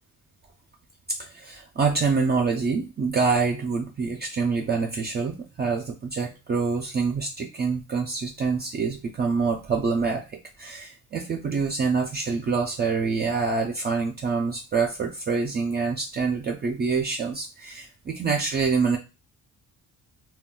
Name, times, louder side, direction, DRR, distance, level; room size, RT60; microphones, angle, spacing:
voice 1, 1.1-19.0, right 4 dB, 30° right, 2 dB, 0.4 m, -26 dB
2.3 x 2.1 x 3.6 m, 0.29 s
cardioid pair, 120°, 32 cm